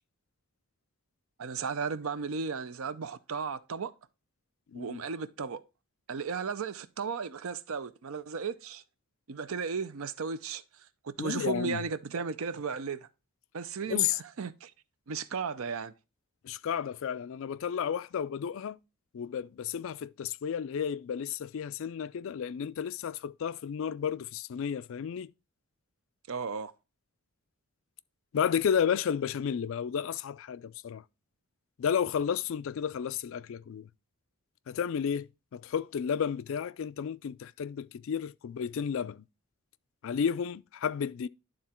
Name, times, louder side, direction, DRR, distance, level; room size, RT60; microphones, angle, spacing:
voice 1, 1.4-3.9 4.7-5.6 6.1-8.8 9.3-10.6 11.0-13.1 13.5-14.1 14.4-14.7 15.1-15.9 26.3-26.7, right 5 dB, 65° right, 0.5 m, -35 dB
voice 2, 4.7-5.0 11.2-11.8 13.9-14.2 16.4-18.8 19.1-25.3 28.3-31.0 31.8-33.9 34.7-39.2 40.0-41.3, left 7 dB, 60° left, 0.3 m, -32 dB
11.5 x 3.8 x 4.3 m
head